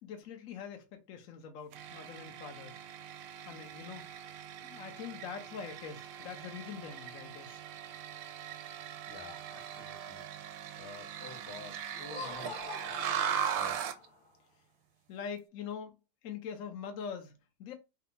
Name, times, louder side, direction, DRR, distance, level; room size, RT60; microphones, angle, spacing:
voice 1, 0.0-2.7 3.5-4.0 4.6-7.6 15.1-15.9 16.2-17.7, left 7 dB, 55° left, 1.1 m, -43 dB
sound 1, 1.7-14.0, right 9 dB, 75° right, 1.2 m, -40 dB
voice 2, 9.1-10.2 10.8-12.6 13.1-14.0, left 3 dB, 80° left, 2.1 m, -50 dB
Laughter, 11.9-14.3, left 3 dB, 40° left, 1.6 m, -45 dB
4.5 x 2.3 x 3.9 m
omnidirectional pair, 2.2 m